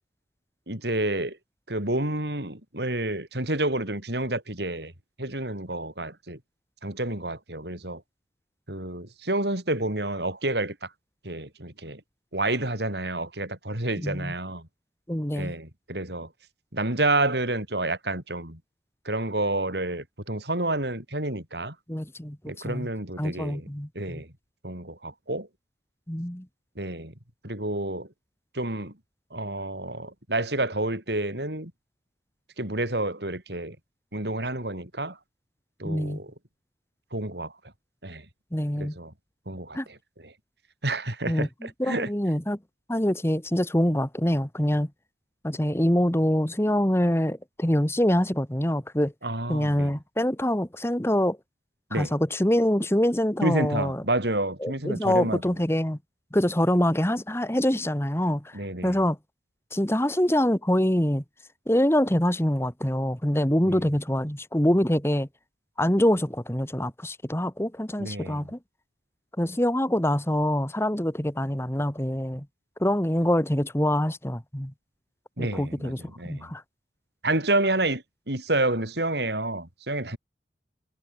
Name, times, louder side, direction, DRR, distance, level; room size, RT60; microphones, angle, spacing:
voice 1, 0.7-1.4 1.7-4.9 5.2-6.4 6.8-8.0 8.7-10.9 11.2-12.0 12.3-14.6 15.3-16.3 16.7-18.6 19.0-21.7 22.5-23.7 23.9-24.3 24.6-25.5 26.8-27.1 27.4-28.1 28.5-28.9 29.3-31.7 32.6-33.8 34.1-35.2 35.8-36.3 37.1-37.5 38.0-38.2 38.8-39.1 39.5-40.0 40.2-40.3 40.8-42.1 49.2-49.9 51.9-52.1 53.4-55.4 58.5-59.0 63.6-63.8 68.0-68.5 75.4-76.5 77.2-80.2, right 2 dB, 65° right, 6.8 m, -29 dB
voice 2, 14.0-14.3 15.1-15.5 21.9-22.4 22.6-22.9 23.2-24.2 26.1-26.5 35.8-36.2 38.5-39.0 39.7-39.9 41.3-42.6 42.9-44.9 45.4-49.1 49.5-51.4 51.9-54.0 54.6-56.0 56.3-59.2 59.7-61.2 61.7-65.3 65.8-68.6 69.4-72.5 72.8-74.7 75.4-76.6, equal, 15° left, 1.9 m, -25 dB
head